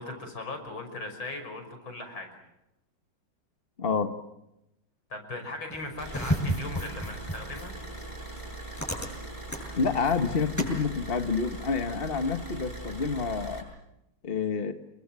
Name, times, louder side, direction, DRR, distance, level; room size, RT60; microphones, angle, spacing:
voice 1, 0.0-2.3 5.1-7.7, left 2 dB, 70° left, 6 dB, 6.6 m, -38 dB
voice 2, 3.8-4.1 9.7-13.6 14.2-14.7, left 5 dB, 30° left, 7 dB, 1.5 m, -28 dB
sound 1, 5.7-10.8, equal, 5° left, 8.0 m, -34 dB
sound 2, 6.0-13.6, right 2 dB, 15° right, 7.8 m, -41 dB
30.0 x 23.0 x 7.5 m, 0.87 s
omnidirectional pair, 2.3 m